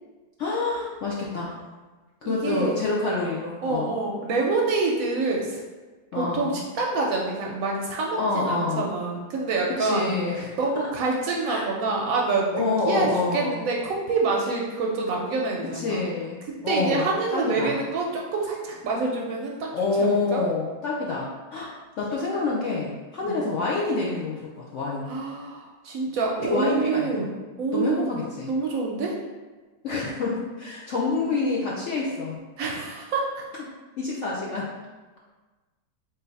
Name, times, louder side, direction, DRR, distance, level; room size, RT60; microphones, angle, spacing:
voice 1, 0.4-1.6 2.2-3.9 6.1-6.6 8.2-8.9 9.8-10.5 11.5-11.6 12.5-13.7 15.7-16.4 16.6-17.8 19.7-25.1 26.4-27.3 27.7-28.5 29.8-32.4 34.0-34.7, left 3 dB, 70° left, -4 dB, 0.7 m, -27 dB
voice 2, 2.2-2.8 3.6-5.6 6.1-10.1 10.6-16.0 16.5-19.7 20.0-20.4 23.2-23.4 25.1-28.2 28.5-29.2 32.6-33.4, right 3 dB, 70° right, -1 dB, 0.9 m, -27 dB
3.9 x 2.6 x 4.0 m, 1.3 s
omnidirectional pair, 1.8 m